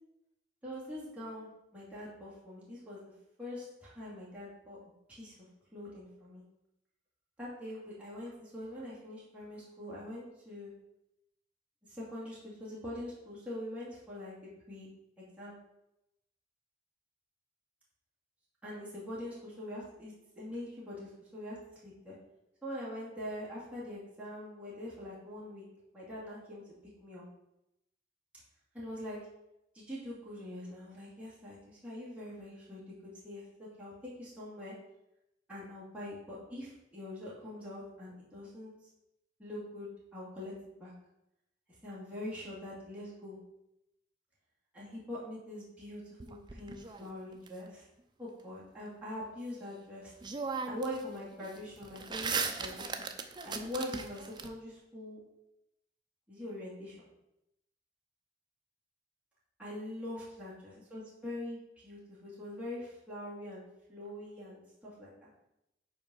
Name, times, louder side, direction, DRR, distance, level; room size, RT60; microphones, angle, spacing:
voice 1, 0.6-3.0 3.4-4.8 5.1-5.3 5.7-6.4 7.4-10.7 11.9-14.4 14.7-14.9 15.2-15.6 18.6-21.6 21.8-22.1 22.6-25.6 25.9-26.6 27.0-27.2 28.7-29.2 29.7-32.8 33.2-33.9 34.2-34.7 35.5-38.7 39.4-40.5 40.8-40.9 41.8-43.4 44.7-46.0 46.3-47.8 48.2-50.1 50.7-53.0 53.4-55.2 56.3-57.1 59.6-65.3, left 1 dB, 10° right, -9 dB, 2.3 m, -43 dB
sound 1, 46.2-47.5 49.7-49.8 50.2-51.0 51.3-54.5, right 5 dB, 25° right, 0.5 m, -37 dB
5.5 x 4.6 x 6.0 m, 0.86 s
head